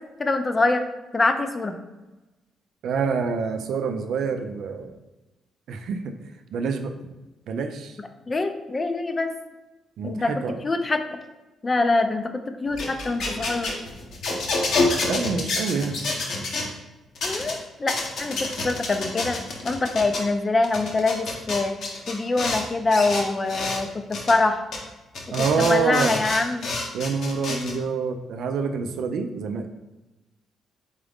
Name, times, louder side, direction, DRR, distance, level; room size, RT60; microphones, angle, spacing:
voice 1, 0.2-0.8 1.1-1.8 8.3-9.3 10.0-10.3 10.6-11.2 11.6-13.8 17.2-19.4 19.6-21.7 22.1-23.9 24.3-24.6 25.6-26.7 27.5-27.8, left 3 dB, 30° left, 7 dB, 0.5 m, -24 dB
voice 2, 2.8-4.9 5.7-6.1 6.5-6.9 7.5-8.0 10.0-10.6 14.3-14.4 15.0-16.0 25.3-26.2 26.9-29.7, right 5 dB, 75° right, 7 dB, 0.4 m, -26 dB
sound 1, 12.7-16.7 17.2-17.5 17.9-20.2 20.6-22.6 22.9-23.8 24.1-24.3 24.7-24.8 25.1-27.7, left 3 dB, 70° left, 1.0 m, -28 dB
4.0 x 3.7 x 3.5 m, 1.1 s
cardioid pair, 90°, 0 cm